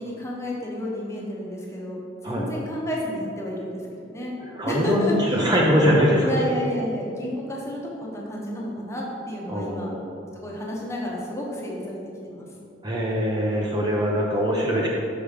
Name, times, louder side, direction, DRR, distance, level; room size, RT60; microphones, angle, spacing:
voice 1, 0.0-4.3 4.7-5.2 6.2-10.0 10.3-12.5, left 1 dB, 15° left, -3 dB, 1.0 m, -31 dB
voice 2, 4.5-6.4 9.5-10.0 12.8-14.9, equal, 20° right, -3 dB, 0.6 m, -22 dB
6.0 x 5.1 x 5.0 m, 2.5 s
head